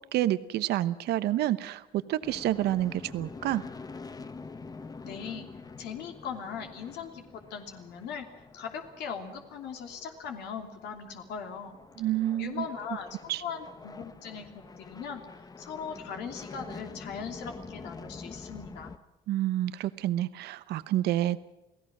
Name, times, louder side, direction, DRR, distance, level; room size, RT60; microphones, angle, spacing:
voice 1, 0.1-3.6 12.0-12.6 13.3-13.4 19.3-21.4, right 13 dB, 75° right, 13 dB, 0.9 m, -28 dB
sound 1, 2.2-19.0, left 4 dB, 20° left, 1.1 m, -46 dB
voice 2, 5.0-5.5 5.8-8.3 8.5-11.8 12.4-15.2 15.6-18.9, left 6 dB, 80° left, 3 dB, 3.1 m, -39 dB
29.0 x 17.5 x 6.1 m, 0.98 s
cardioid pair, 110°, 17 cm